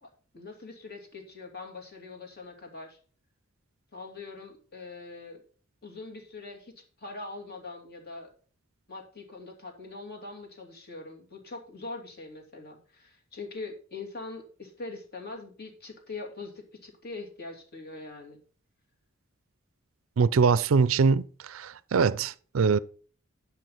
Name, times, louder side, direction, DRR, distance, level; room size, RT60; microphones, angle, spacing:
voice 1, 0.0-3.0 3.9-5.4 5.8-6.7 7.0-8.3 8.9-18.4, left 3 dB, 50° left, 2.8 m, -42 dB
voice 2, 20.2-22.8, right 5 dB, 80° right, 0.4 m, -23 dB
10.5 x 5.9 x 5.5 m
head